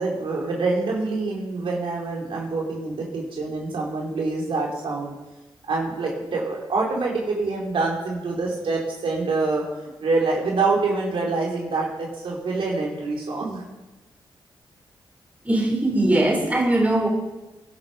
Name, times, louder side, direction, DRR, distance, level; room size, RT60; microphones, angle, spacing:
voice 1, 0.0-5.1 5.7-9.6 10.0-13.6, right 3 dB, 75° right, -2 dB, 4.5 m, -26 dB
voice 2, 15.4-17.1, right 1 dB, 15° right, 0 dB, 4.8 m, -20 dB
21.0 x 11.5 x 5.3 m, 1.1 s
cardioid pair, 65°, 9 cm